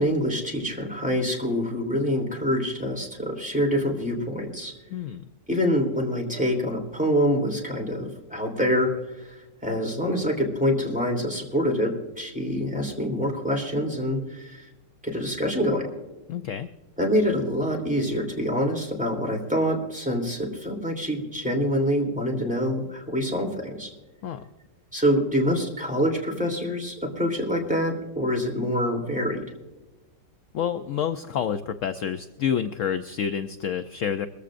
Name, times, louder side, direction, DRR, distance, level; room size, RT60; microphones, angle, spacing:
voice 1, 0.0-4.7 5.5-14.7 15.0-15.9 17.0-23.9 24.9-29.4, equal, 5° right, 0 dB, 3.2 m, -26 dB
voice 2, 4.9-5.2 16.3-16.7 24.2-24.4 30.5-34.3, left 8 dB, 65° left, 9 dB, 0.8 m, -28 dB
22.0 x 15.0 x 2.5 m, 1.1 s
omnidirectional pair, 1.9 m